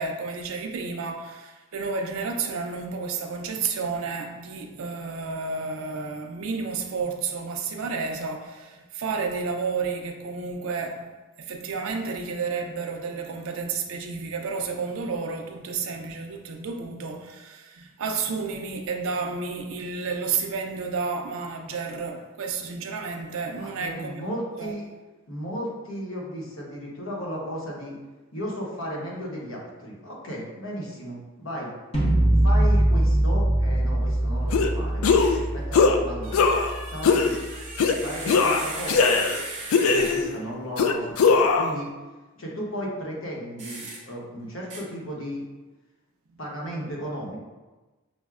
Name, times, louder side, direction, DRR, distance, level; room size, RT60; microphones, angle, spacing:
voice 1, 0.0-11.1 11.4-24.3 24.6-24.7, right 4 dB, 80° right, 0.4 m, -31 dB
voice 2, 23.6-24.9 25.3-28.0 28.3-31.7 32.4-35.0 35.5-36.5 36.9-37.4 37.8-39.2 39.8-41.9 42.4-45.4 46.4-47.4, equal, 75° left, 0.9 m, -34 dB
sound 1, 31.9-37.9, right 1 dB, 30° left, 0.7 m, -23 dB
sound 2, 34.5-34.7 35.0-35.4 35.7-36.0 36.3-36.7 37.0-37.3 37.8-38.0 38.3-39.4 39.7-40.3 40.8-41.7, left 4 dB, 90° left, 0.3 m, -20 dB
sound 3, 35.2-35.5 36.2-40.4 43.6-44.0 44.7-44.8, right 2 dB, 35° right, 0.7 m, -38 dB
6.1 x 2.1 x 2.3 m
head